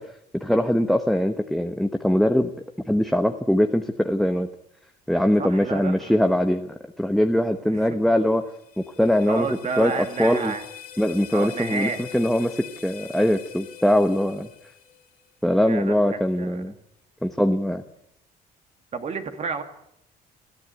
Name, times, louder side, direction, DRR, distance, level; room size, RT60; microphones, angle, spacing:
voice 1, 0.3-2.5 2.9-4.5 5.1-8.4 8.8-9.5 9.8-10.5 11.0-14.5 15.4-16.7 17.2-17.8, equal, ahead, 5 dB, 1.1 m, -22 dB
voice 2, 5.4-6.2 7.7-8.0 9.3-10.6 11.3-12.1 15.6-16.8 18.9-19.6, right 5 dB, 40° right, 7 dB, 2.4 m, -31 dB
sound 1, 8.2-15.3, left 9 dB, 60° left, 3.4 m, -43 dB
21.0 x 13.5 x 9.3 m, 0.76 s
cardioid pair, 110°, 17 cm